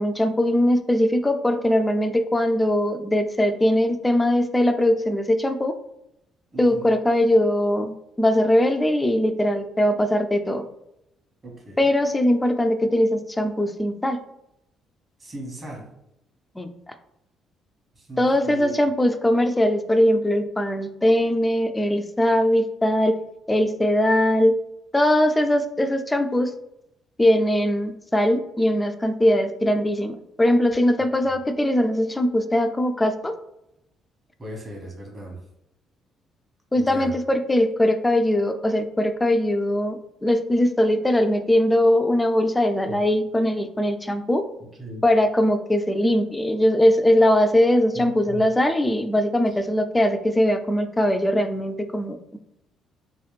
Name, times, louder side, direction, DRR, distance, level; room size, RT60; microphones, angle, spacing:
voice 1, 0.0-5.8 6.6-10.6 11.8-14.2 16.6-16.9 18.2-23.2 23.5-24.6 24.9-26.5 27.2-33.3 36.7-44.5 45.0-52.4, left 1 dB, 15° left, 8 dB, 0.3 m, -21 dB
voice 2, 6.5-6.9 11.4-11.8 15.2-15.8 18.0-18.7 31.2-31.3 34.4-35.4 36.7-37.1 42.9-43.0 44.8-45.0 47.9-48.4, right 1 dB, 35° right, 0 dB, 1.3 m, -37 dB
3.1 x 3.0 x 3.2 m, 0.82 s
cardioid pair, 95°, 0 cm